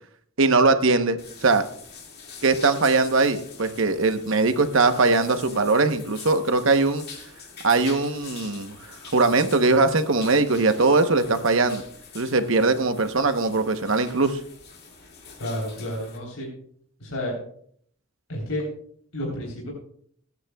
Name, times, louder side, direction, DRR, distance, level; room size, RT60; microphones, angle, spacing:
voice 1, 0.4-1.7 2.4-7.1 7.6-8.8 9.1-11.8 12.1-14.4, right 3 dB, 65° right, 8 dB, 1.0 m, -21 dB
sound 1, 1.2-16.2, left 5 dB, 50° left, 2.2 m, -44 dB
voice 2, 15.4-16.5 17.0-17.4 18.3-18.7 19.1-19.7, left 1 dB, 90° left, -3 dB, 3.6 m, -30 dB
23.5 x 9.6 x 2.3 m, 0.63 s
head